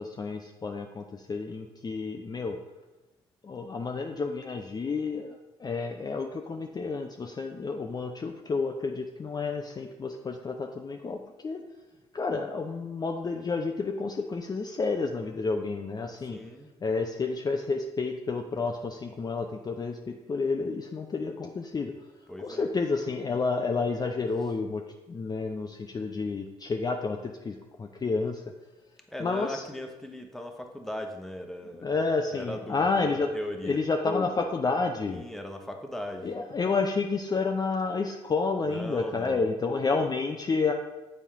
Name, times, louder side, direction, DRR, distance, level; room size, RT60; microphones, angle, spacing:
voice 1, 0.0-2.6 3.4-11.6 12.1-16.4 16.8-21.9 22.4-24.8 25.1-28.4 29.2-29.6 31.8-33.3 33.6-35.2 36.2-40.7, left 4 dB, 30° left, 3 dB, 0.5 m, -30 dB
voice 2, 16.3-16.7 22.3-22.7 29.1-31.9 32.3-33.1 33.3-33.8 35.1-36.3 38.6-39.5, equal, ahead, 3 dB, 1.0 m, -38 dB
7.2 x 4.2 x 3.6 m, 1.1 s
hypercardioid pair, 60°, 14 cm